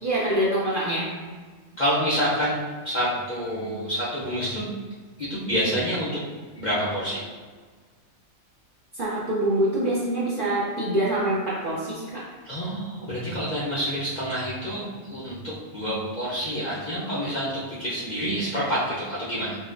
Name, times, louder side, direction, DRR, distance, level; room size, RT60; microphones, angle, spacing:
voice 1, 0.0-1.1 9.0-12.2, right 1 dB, 50° right, -8 dB, 0.6 m, -25 dB
voice 2, 1.8-2.6 2.8-4.7 5.2-6.2 6.5-7.2 12.4-19.6, equal, 55° left, -9 dB, 0.5 m, -27 dB
3.9 x 2.1 x 2.4 m, 1.5 s
omnidirectional pair, 1.5 m